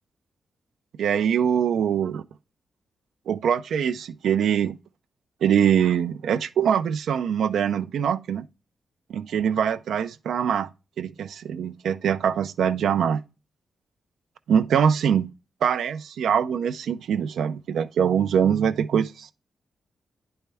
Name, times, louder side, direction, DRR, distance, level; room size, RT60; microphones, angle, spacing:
voice 1, 1.0-2.2 3.3-4.8 5.4-8.4 9.1-10.7 11.0-13.2 14.5-15.3 15.6-19.3, right 8 dB, 75° right, 0.5 m, -23 dB
9.8 x 4.4 x 3.4 m
wide cardioid pair, 150°, 0 cm